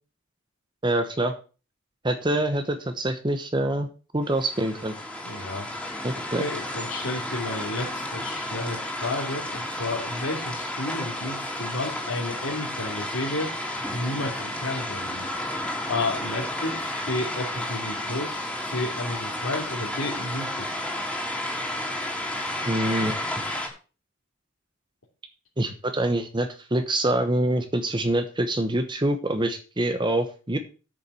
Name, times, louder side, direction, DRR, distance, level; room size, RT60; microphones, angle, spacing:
voice 1, 0.8-1.3 2.0-3.9 4.1-4.9 6.0-6.4 22.6-23.2 25.6-30.6, right 1 dB, 20° right, 8 dB, 1.0 m, -25 dB
sound 1, 4.2-23.7, left 1 dB, 5° left, 2.9 m, -32 dB
voice 2, 5.2-5.9 6.4-13.5 13.9-15.3 15.9-20.7, left 2 dB, 75° left, -4 dB, 2.9 m, -32 dB
8.5 x 7.2 x 7.0 m, 0.35 s
head